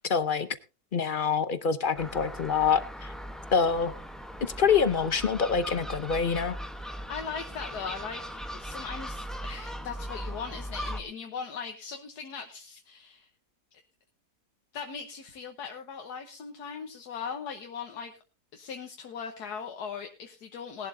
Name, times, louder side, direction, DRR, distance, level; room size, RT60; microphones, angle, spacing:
voice 1, 0.1-0.5 0.9-3.1 3.5-3.9 4.4-6.6, left 6 dB, 45° left, 12 dB, 0.7 m, -26 dB
Gull seagull, 1.9-11.0, equal, ahead, 0.7 m, -39 dB
voice 2, 6.9-13.3 14.7-18.1 18.5-20.9, left 6 dB, 85° left, 4 dB, 1.6 m, -39 dB
19.5 x 11.0 x 2.7 m, 0.31 s
omnidirectional pair, 1.7 m